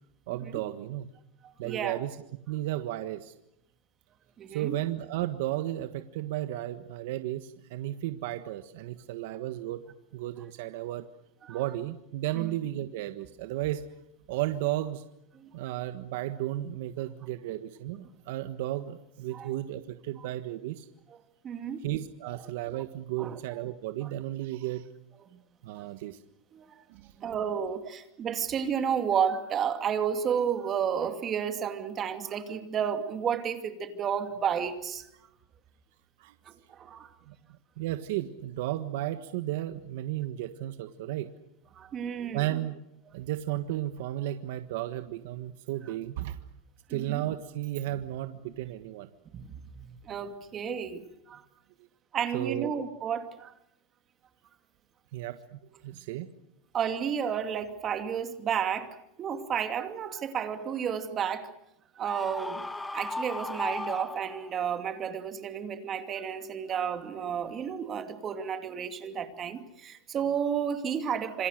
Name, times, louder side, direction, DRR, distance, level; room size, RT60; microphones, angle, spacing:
voice 1, 0.3-1.1 1.6-2.2 2.5-3.3 4.5-9.8 10.1-11.0 11.5-13.8 14.3-15.0 15.5-20.9 21.8-24.9 25.6-26.2 26.9-27.1 36.2-36.3 37.3-37.4 37.8-41.3 42.3-42.8 43.1-46.4 46.9-49.1 52.3-52.7 55.1-56.3, right 14 dB, 65° right, 10 dB, 1.5 m, -34 dB
voice 2, 1.6-2.0 4.4-4.8 11.4-11.6 12.4-12.5 15.3-15.5 19.3-19.5 21.4-21.8 23.2-23.4 25.8-25.9 26.5-26.7 27.2-35.0 36.5-37.1 41.7-42.5 46.9-47.2 49.3-49.5 49.9-51.0 51.3-51.4 52.1-53.5 56.7-58.9 59.2-61.5 62.0-62.7 62.9-71.5, right 8 dB, 25° right, 8 dB, 2.6 m, -31 dB
Screaming, 62.0-64.7, left 2 dB, 5° left, 1.3 m, -36 dB
27.0 x 26.0 x 6.6 m, 0.80 s
supercardioid pair, 155°, 0 cm